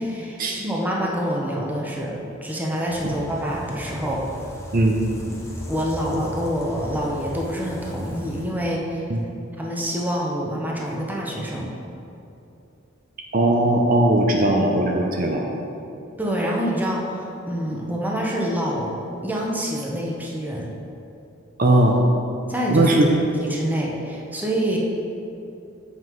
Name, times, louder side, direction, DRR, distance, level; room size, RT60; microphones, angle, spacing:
voice 1, 0.0-4.3 5.3-9.0 9.6-11.7 16.2-18.9 19.2-20.7 22.5-23.0 23.4-24.8, equal, 10° right, -3 dB, 0.9 m, -26 dB
sound 1, 2.9-8.5, equal, 15° left, 1.0 m, -37 dB
voice 2, 13.3-15.5 21.6-22.0 22.7-23.1, right 1 dB, 45° right, 0 dB, 0.7 m, -18 dB
7.5 x 5.8 x 4.6 m, 2.8 s
head